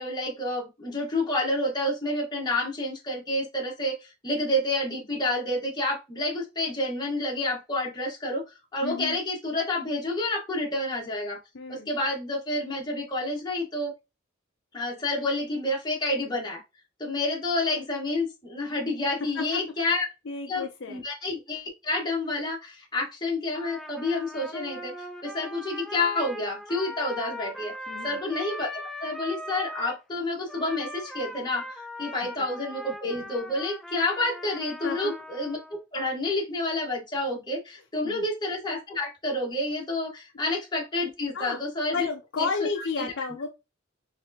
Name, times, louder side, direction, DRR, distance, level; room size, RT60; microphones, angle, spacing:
voice 1, 0.0-8.4 8.7-11.4 11.7-13.9 14.7-16.6 17.0-20.1 20.5-27.7 28.0-35.6 35.9-42.0 42.4-42.5 43.0-43.1, left 2 dB, 20° left, 1.4 m, -29 dB
voice 2, 8.8-9.2 11.5-11.9 19.4-19.6 20.3-21.0 27.9-28.2 32.2-32.3 34.8-35.1 38.0-38.2 41.3-41.6 41.9-43.5, left 4 dB, 60° left, 0.6 m, -32 dB
Trumpet, 23.5-30.0 30.5-35.8, left 1 dB, ahead, 0.5 m, -40 dB
4.6 x 3.3 x 2.8 m
head